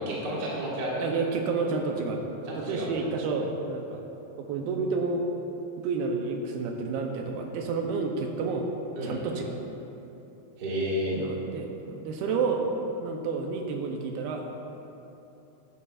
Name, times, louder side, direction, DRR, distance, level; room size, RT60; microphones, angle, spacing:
voice 1, 0.0-0.9 2.5-2.9 9.0-9.1 10.6-11.2, equal, 40° right, -7 dB, 1.7 m, -31 dB
voice 2, 1.0-2.2 2.5-4.0 4.4-5.3 5.8-8.7 9.0-9.6 11.1-12.7 13.0-14.5, right 4 dB, 80° right, 2 dB, 2.4 m, -30 dB
14.0 x 11.0 x 2.5 m, 2.9 s
omnidirectional pair, 4.8 m